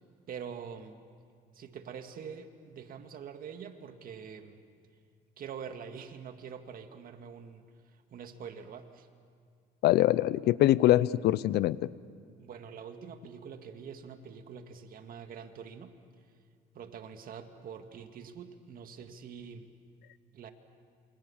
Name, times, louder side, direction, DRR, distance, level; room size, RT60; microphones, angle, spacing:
voice 1, 0.3-1.0 1.5-4.6 5.4-7.6 7.9-9.1 12.4-15.9 16.7-19.7 20.3-20.5, right 7 dB, 60° right, 6 dB, 2.0 m, -45 dB
voice 2, 9.8-11.9, left 14 dB, 75° left, 19 dB, 0.7 m, -24 dB
28.0 x 24.5 x 7.2 m, 2.2 s
cardioid pair, 110°, 17 cm